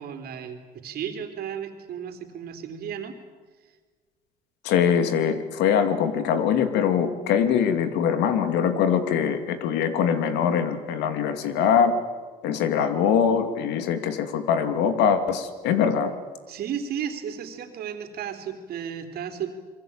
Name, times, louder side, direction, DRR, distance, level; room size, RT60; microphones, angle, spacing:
voice 1, 0.0-3.2 16.5-19.5, right 8 dB, 65° right, 7 dB, 3.6 m, -34 dB
voice 2, 4.6-11.9 12.4-16.1, left 7 dB, 90° left, 9 dB, 2.5 m, -23 dB
27.0 x 22.5 x 8.9 m, 1.4 s
cardioid pair, 110°, 17 cm